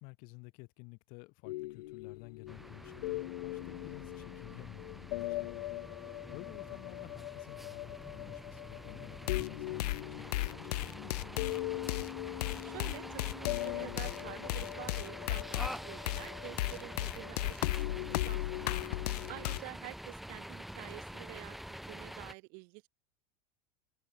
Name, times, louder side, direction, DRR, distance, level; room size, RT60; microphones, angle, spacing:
voice 1, 0.0-11.9, left 30 dB, 45° left, 6.1 m, -53 dB
sound 1, 1.4-19.6, left 18 dB, 70° left, 2.0 m, -37 dB
sound 2, 2.5-22.3, equal, ahead, 0.7 m, -47 dB
voice 2, 12.6-18.8 19.3-22.9, right 34 dB, 45° right, 2.5 m, -49 dB
supercardioid pair, 165°, 21 cm